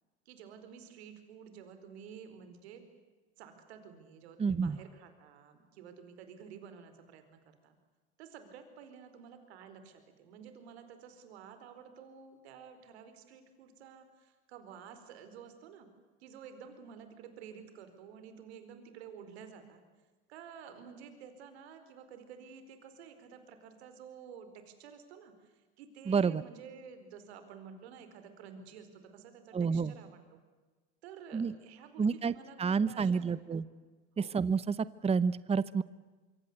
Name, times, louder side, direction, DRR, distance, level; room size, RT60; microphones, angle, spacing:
voice 1, 0.3-2.8 3.4-7.8 8.2-15.9 16.2-19.8 20.3-30.4 31.0-33.7 34.2-34.3, right 7 dB, 80° right, 9 dB, 4.5 m, -51 dB
voice 2, 4.4-4.8 26.1-26.4 29.5-29.9 31.3-31.5 32.0-32.3 32.6-33.6 34.2-35.8, right 5 dB, 20° right, 17 dB, 0.9 m, -29 dB
25.5 x 25.0 x 8.1 m, 1.3 s
supercardioid pair, 95°, 31 cm